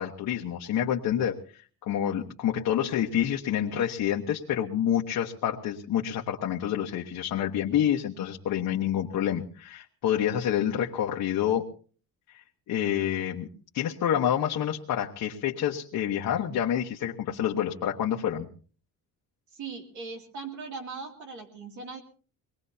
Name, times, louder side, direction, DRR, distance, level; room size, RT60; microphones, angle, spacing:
voice 1, 0.0-11.6 12.3-13.5 13.7-18.5, left 10 dB, 65° left, 0 dB, 1.3 m, -28 dB
voice 2, 19.5-22.0, right 4 dB, 55° right, 3 dB, 2.7 m, -39 dB
24.0 x 20.0 x 2.8 m, 0.41 s
cardioid pair, 170°, 35 cm